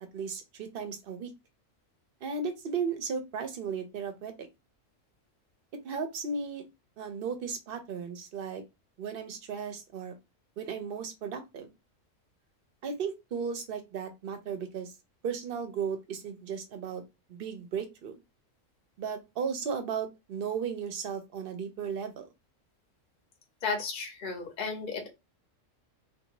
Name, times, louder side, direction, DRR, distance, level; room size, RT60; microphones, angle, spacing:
voice 1, 0.1-1.3 2.2-4.5 5.8-6.7 7.0-8.6 9.0-10.1 10.6-11.7 12.8-14.9 15.2-17.0 17.3-18.2 19.0-22.2, right 6 dB, 55° right, 0.7 m, -35 dB
voice 2, 23.6-25.1, left 4 dB, 45° left, 0.8 m, -34 dB
2.6 x 2.3 x 3.0 m
omnidirectional pair, 1.4 m